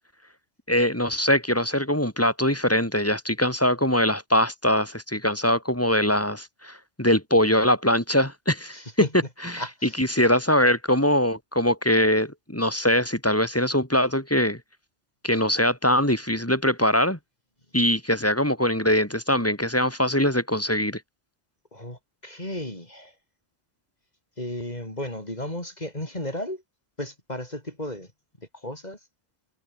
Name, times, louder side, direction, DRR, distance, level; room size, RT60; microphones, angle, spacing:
voice 1, 0.7-9.1 9.4-14.6 15.2-17.2 17.7-21.0, left 1 dB, 10° left, 3.9 m, -22 dB
voice 2, 8.7-9.1 9.6-10.0 21.7-23.1 24.4-26.6 27.0-28.1 28.6-29.0, left 1 dB, 35° left, 5.4 m, -34 dB
omnidirectional pair, 1.3 m